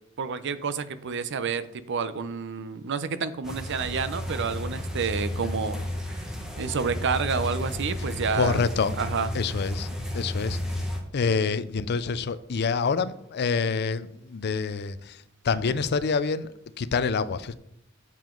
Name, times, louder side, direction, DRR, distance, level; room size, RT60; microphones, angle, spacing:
voice 1, 0.2-5.8 6.1-6.2 6.6-8.6 9.0-9.3, right 5 dB, 60° right, 0.6 m, -29 dB
sound 1, 3.4-11.0, left 1 dB, 5° right, 1.5 m, -32 dB
voice 2, 8.3-9.0 9.3-9.9 10.1-10.6 11.1-16.5 16.8-17.5, left 5 dB, 50° left, 0.5 m, -27 dB
7.5 x 7.2 x 3.8 m
head